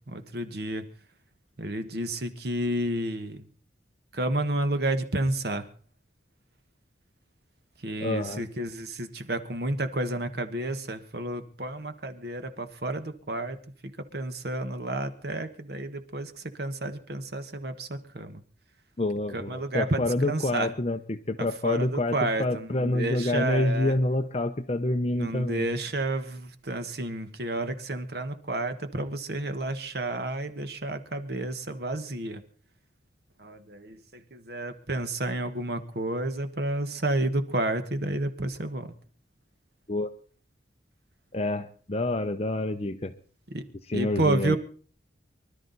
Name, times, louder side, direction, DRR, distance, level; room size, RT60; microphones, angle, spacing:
voice 1, 0.1-0.8 1.6-3.4 4.1-5.7 7.8-13.6 14.1-16.3 16.6-18.4 19.3-20.7 21.4-23.9 25.2-32.4 33.4-38.9 43.5-43.6 43.9-44.6, right 2 dB, 55° right, 9 dB, 1.3 m, -31 dB
voice 2, 8.0-8.4 19.0-25.7 39.9-40.1 41.3-43.1 43.9-44.6, left 2 dB, 35° left, 7 dB, 0.7 m, -27 dB
24.5 x 12.5 x 4.0 m, 0.42 s
head